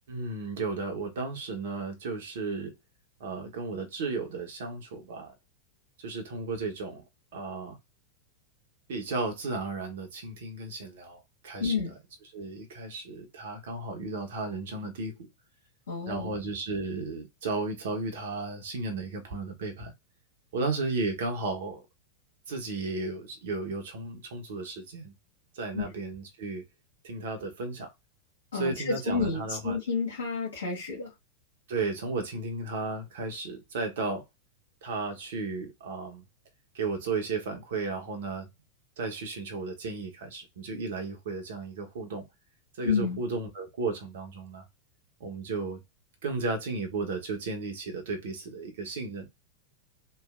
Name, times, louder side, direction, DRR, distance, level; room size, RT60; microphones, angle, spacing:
voice 1, 0.1-2.7 3.2-5.3 6.0-7.0 7.3-7.8 8.9-11.2 11.4-11.7 12.3-15.1 16.1-19.9 20.5-21.8 22.5-25.1 25.5-26.6 27.0-27.9 28.5-29.8 31.7-34.2 34.8-36.2 36.7-38.5 39.0-42.2 42.8-44.6 45.2-45.8 46.2-49.3, right 3 dB, 55° right, 1.1 m, -34 dB
voice 2, 11.6-11.9 15.9-16.3 25.7-25.9 28.5-31.1 42.8-43.2, left 5 dB, 70° left, 1.3 m, -30 dB
3.1 x 2.4 x 2.5 m
figure-of-eight pair, 90°, 0 cm